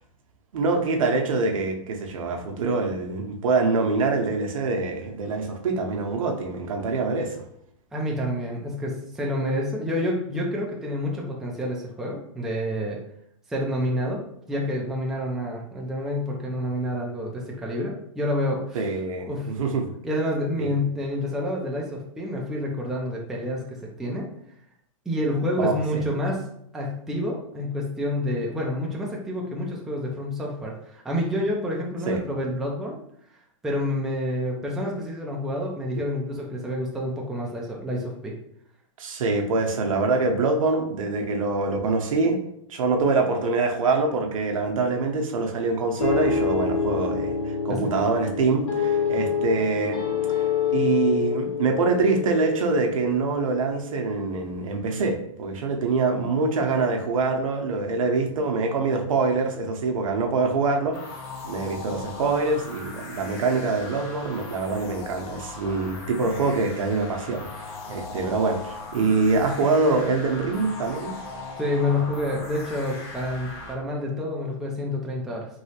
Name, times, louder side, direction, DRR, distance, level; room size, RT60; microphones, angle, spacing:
voice 1, 0.5-7.4 18.7-19.9 20.6-20.7 25.6-26.0 32.1-32.2 39.0-42.4 42.7-50.0 50.3-50.4 50.7-71.1, right 3 dB, 80° right, 3 dB, 0.7 m, -25 dB
voice 2, 7.9-13.0 13.5-14.2 14.5-18.9 19.3-19.5 20.0-24.3 25.1-26.4 26.7-33.0 33.6-38.3 47.7-47.9 71.6-75.5, left 1 dB, ahead, -2 dB, 0.3 m, -28 dB
sound 1, 46.0-54.7, left 6 dB, 85° left, 0.9 m, -27 dB
sound 2, 60.9-73.7, left 3 dB, 45° left, 0.7 m, -39 dB
3.1 x 2.7 x 2.8 m, 0.72 s
hypercardioid pair, 145°, 17 cm